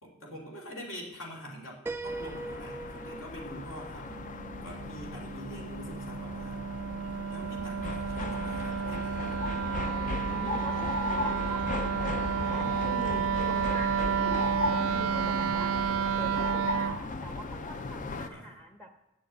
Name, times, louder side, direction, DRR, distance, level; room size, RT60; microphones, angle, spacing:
voice 1, 0.0-4.2 4.6-6.7 7.3-9.5 17.8-18.5, equal, 70° left, -2 dB, 2.7 m, -45 dB
Piano, 1.9-5.6, right 3 dB, 10° right, 0.4 m, -42 dB
sound 1, 2.0-18.3, left 3 dB, 40° left, 0.5 m, -36 dB
Wind instrument woodwind instrument, 4.1-17.0, right 8 dB, 80° right, 0.4 m, -31 dB
voice 2, 10.3-15.7 16.2-18.9, right 1 dB, 5° left, 4 dB, 0.8 m, -44 dB
9.1 x 6.5 x 8.7 m, 1.0 s
head